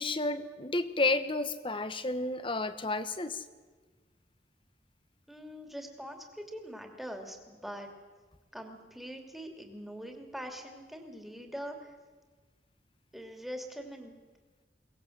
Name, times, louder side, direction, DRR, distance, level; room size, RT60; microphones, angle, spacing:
voice 1, 0.0-3.4, left 2 dB, 30° left, 12 dB, 1.1 m, -31 dB
voice 2, 5.3-7.9 8.5-11.9 13.1-14.2, equal, ahead, 3 dB, 2.8 m, -43 dB
23.0 x 19.0 x 7.9 m, 1.4 s
head